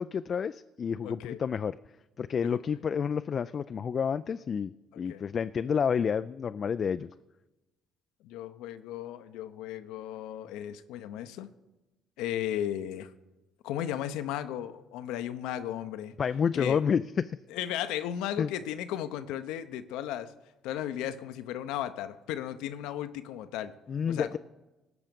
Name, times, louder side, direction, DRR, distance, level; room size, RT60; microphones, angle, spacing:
voice 1, 0.0-1.8 2.2-7.1 16.2-17.0 18.4-18.5 23.9-24.4, left 7 dB, 45° left, 11 dB, 0.3 m, -29 dB
voice 2, 1.0-1.4 2.4-2.6 4.9-5.2 8.2-11.5 12.2-13.1 13.6-16.1 16.5-16.8 17.5-20.3 20.6-23.7 24.1-24.4, left 11 dB, 75° left, 11 dB, 0.7 m, -35 dB
18.0 x 6.2 x 5.2 m, 1.1 s
hypercardioid pair, 55°, 0 cm